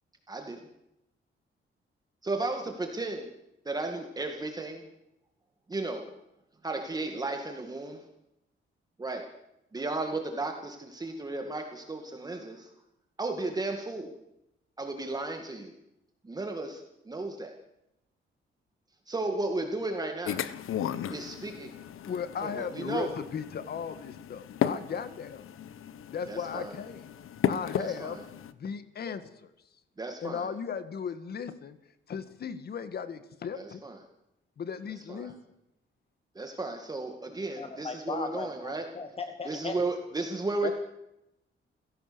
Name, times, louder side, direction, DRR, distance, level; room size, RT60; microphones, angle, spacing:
voice 1, 0.3-0.7 2.2-3.3 3.7-4.8 5.7-6.1 6.6-8.0 9.0-9.3 9.7-12.7 13.2-14.1 14.8-15.7 16.2-17.5 19.1-20.4 21.1-21.7 22.4-23.1 26.3-26.7 27.8-28.2 30.0-30.5 33.5-34.0 35.1-35.3 36.4-38.8 39.4-40.7, right 2 dB, 20° right, 4 dB, 2.2 m, -34 dB
sound 1, 20.3-28.5, left 10 dB, 80° left, 1.3 m, -35 dB
voice 2, 22.1-25.4 26.1-27.0 27.5-28.2 28.5-29.5 30.2-31.8 32.1-33.8 34.6-35.6, left 7 dB, 50° left, 11 dB, 1.9 m, -36 dB
voice 3, 37.6-39.8 40.6-40.7, left 4 dB, 25° left, 7 dB, 1.5 m, -36 dB
29.0 x 17.0 x 7.0 m, 0.87 s
wide cardioid pair, 160°, 21 cm